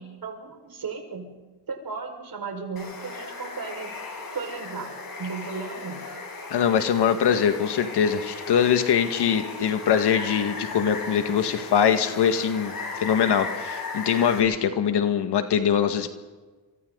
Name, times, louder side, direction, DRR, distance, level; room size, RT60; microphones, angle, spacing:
voice 1, 0.0-1.4 1.7-4.0 4.3-6.1, right 5 dB, 60° right, 4 dB, 5.5 m, -35 dB
Water, 2.8-14.4, left 4 dB, 60° left, 7.7 m, -36 dB
voice 2, 6.5-12.7 13.0-16.1, left 8 dB, 80° left, 7 dB, 2.0 m, -22 dB
27.5 x 25.5 x 4.0 m, 1.3 s
cardioid pair, 60°, 40 cm